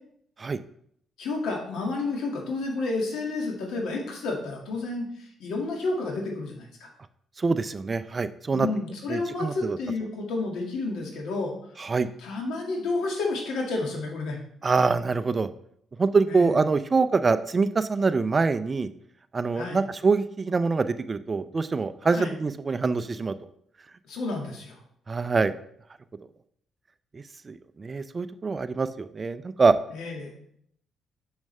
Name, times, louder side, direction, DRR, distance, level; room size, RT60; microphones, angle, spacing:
voice 1, 1.2-5.0 5.4-6.9 8.5-11.5 12.2-14.4 16.3-16.6 19.6-19.8 22.1-22.3 24.1-24.8 29.9-30.3, left 3 dB, 80° left, 0 dB, 1.9 m, -30 dB
voice 2, 7.4-8.7 9.1-9.8 11.8-12.1 14.6-15.5 16.0-18.9 19.3-23.3 25.1-25.5 27.1-29.7, right 4 dB, 30° right, 12 dB, 0.4 m, -25 dB
7.2 x 6.4 x 3.3 m, 0.68 s
cardioid pair, 90°, 0 cm